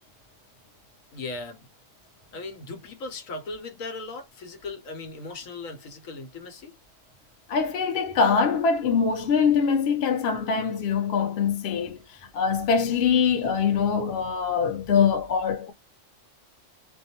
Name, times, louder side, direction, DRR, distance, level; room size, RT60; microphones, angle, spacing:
voice 1, 1.1-1.7 2.3-6.8, left 3 dB, 80° left, 1.2 m, -38 dB
voice 2, 7.5-12.0 12.3-15.7, left 6 dB, 55° left, 0.9 m, -23 dB
2.5 x 2.2 x 2.8 m
omnidirectional pair, 1.4 m